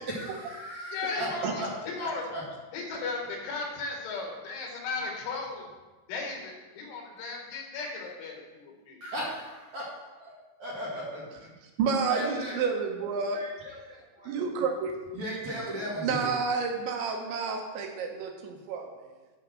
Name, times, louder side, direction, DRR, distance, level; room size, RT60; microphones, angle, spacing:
voice 1, 0.1-1.3 1.6-1.7 2.0-2.4 9.0-9.9 10.6-11.5 12.1-12.6 13.3-14.3 15.1-16.3, equal, 45° right, -5 dB, 2.8 m, -36 dB
voice 2, 0.9-2.2 2.7-5.7 6.1-9.0, left 3 dB, 80° left, 0 dB, 4.2 m, -36 dB
voice 3, 11.8-13.5 14.2-15.0 16.0-18.9, right 5 dB, 75° right, 2 dB, 3.2 m, -30 dB
9.9 x 6.5 x 6.2 m, 1.2 s
omnidirectional pair, 5.5 m